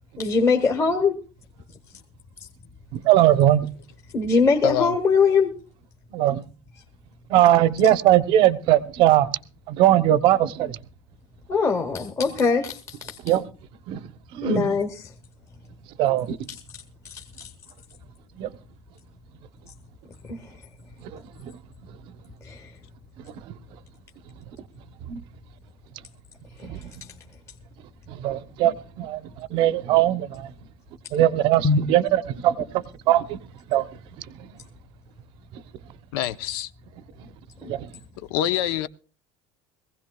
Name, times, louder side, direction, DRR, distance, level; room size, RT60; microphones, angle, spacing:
voice 1, 0.2-1.2 4.1-5.5 11.5-13.2 14.4-15.1 16.5-17.5 20.2-20.5 22.4-22.7 26.6-26.9 31.6-31.9 37.6-37.7, left 4 dB, 25° left, 1.0 m, -23 dB
voice 2, 2.9-3.7 6.1-6.4 7.3-9.3 9.7-10.8 13.2-13.4 13.9-14.0 14.3-14.7 16.0-16.4 18.4-18.5 21.1-21.5 23.5-23.6 25.1-25.2 26.6-26.8 28.1-30.5 31.1-33.4 33.7-33.9 37.6-37.9, right 12 dB, 45° right, 0.7 m, -20 dB
voice 3, 4.6-4.9 36.1-36.7 38.3-38.9, left 12 dB, 85° left, 0.7 m, -25 dB
22.5 x 16.0 x 2.3 m
cardioid pair, 170°, 12 cm